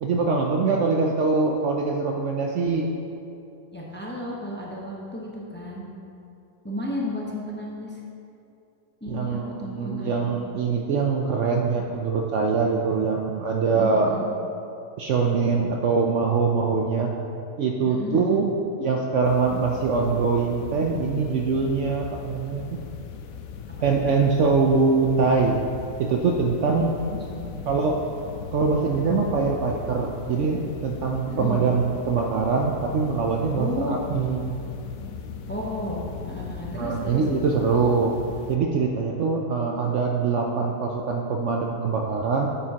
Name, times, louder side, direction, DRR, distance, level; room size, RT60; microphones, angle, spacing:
voice 1, 0.0-2.9 9.1-14.1 15.0-17.1 17.6-22.6 23.8-25.6 26.0-27.0 27.7-28.0 28.5-34.5 36.7-38.1 38.5-42.5, right 4 dB, 65° right, 1 dB, 0.8 m, -23 dB
voice 2, 3.7-5.9 6.6-8.0 9.0-10.3 13.6-14.2 17.8-18.4 23.8-24.1 26.8-27.8 31.2-31.7 33.5-34.0 35.5-37.2, left 1 dB, 10° left, -4 dB, 0.8 m, -33 dB
sound 1, 19.2-38.6, left 6 dB, 70° left, 0.9 m, -38 dB
8.9 x 8.7 x 2.9 m, 2.7 s
omnidirectional pair, 1.6 m